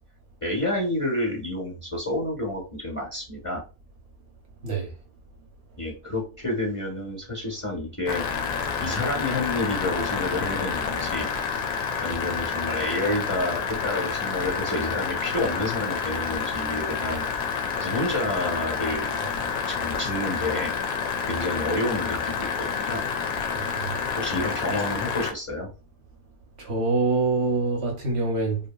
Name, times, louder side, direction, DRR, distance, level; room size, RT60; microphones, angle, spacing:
voice 1, 0.4-3.6 5.8-8.2 8.8-11.3 12.0-17.2 17.8-19.2 19.7-20.7 21.3-23.0 24.2-25.7, left 1 dB, 10° left, 0.6 m, -29 dB
sound 1, 8.1-25.3, left 6 dB, 70° left, 0.9 m, -29 dB
voice 2, 26.6-28.6, right 3 dB, 60° right, 0.7 m, -24 dB
2.7 x 2.7 x 2.2 m
omnidirectional pair, 1.8 m